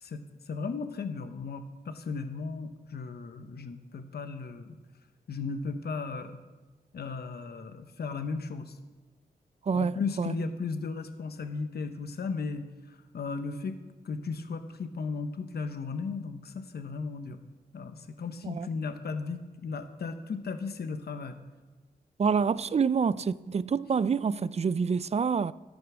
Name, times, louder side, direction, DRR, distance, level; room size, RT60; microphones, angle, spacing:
voice 1, 0.0-4.8 5.3-6.4 6.9-8.8 9.7-13.8 14.0-17.4 17.7-21.4, left 4 dB, 70° left, 0.9 m, -36 dB
voice 2, 9.7-10.3 18.4-18.7 22.2-25.5, right 6 dB, 40° right, 0.4 m, -27 dB
12.5 x 8.9 x 6.1 m
wide cardioid pair, 90°, 17 cm